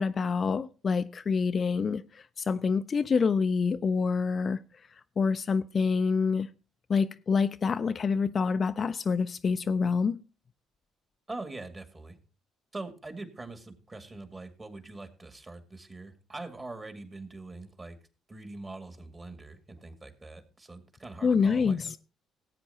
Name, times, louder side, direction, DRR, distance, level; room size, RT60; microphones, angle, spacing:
voice 1, 0.0-4.6 5.2-6.5 6.9-10.2 21.2-22.0, left 5 dB, 40° left, 0.5 m, -27 dB
voice 2, 11.3-12.2 12.7-18.0 18.3-22.0, right 2 dB, 30° right, 2.2 m, -43 dB
17.5 x 8.6 x 2.9 m
hypercardioid pair, 50°, 0 cm